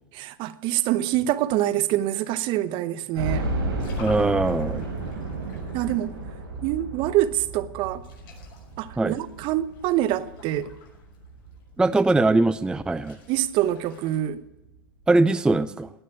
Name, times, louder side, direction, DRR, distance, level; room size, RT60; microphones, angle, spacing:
voice 1, 0.1-3.5 5.7-6.1 6.6-8.0 8.8-10.7 13.3-14.4, right 13 dB, 45° right, 1.0 m, -25 dB
sound 1, 3.1-12.1 12.5-12.6 13.0-13.1 14.3-14.4 14.7-14.8, right 2 dB, 85° right, 5.3 m, -33 dB
sound 2, 3.8-7.3 7.7-14.2, left 6 dB, 50° left, 6.2 m, -52 dB
voice 2, 4.0-4.8 9.0-9.1 11.8-13.2 15.1-15.9, right 2 dB, 5° right, 0.5 m, -21 dB
18.0 x 6.6 x 9.9 m
hypercardioid pair, 110°, 12 cm